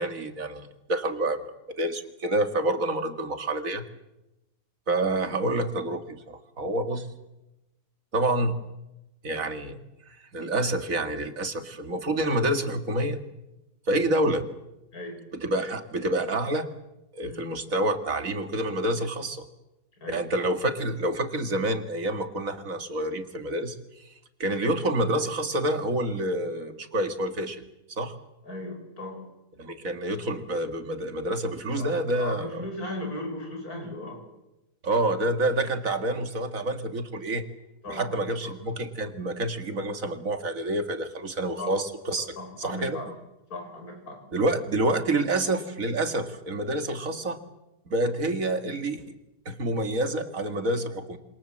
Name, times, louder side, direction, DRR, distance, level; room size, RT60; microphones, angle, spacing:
voice 1, 0.0-1.5 1.8-3.9 4.9-7.1 8.1-8.6 9.2-9.8 10.3-13.2 13.9-14.4 15.4-16.7 17.1-19.4 20.1-23.8 24.0-24.1 24.4-27.6 28.0-28.1 29.6-32.6 34.8-37.4 37.9-42.3 42.6-43.0 44.3-47.4 47.9-49.0 49.5-51.2, right 1 dB, 55° right, 8 dB, 2.4 m, -28 dB
voice 2, 14.9-15.2 17.2-17.5 20.0-20.3 28.4-29.3 31.8-34.3 37.8-38.5 41.6-41.8 42.4-43.1 43.5-44.2, left 1 dB, 65° left, 4 dB, 6.6 m, -37 dB
27.5 x 26.0 x 7.6 m, 0.96 s
omnidirectional pair, 1.7 m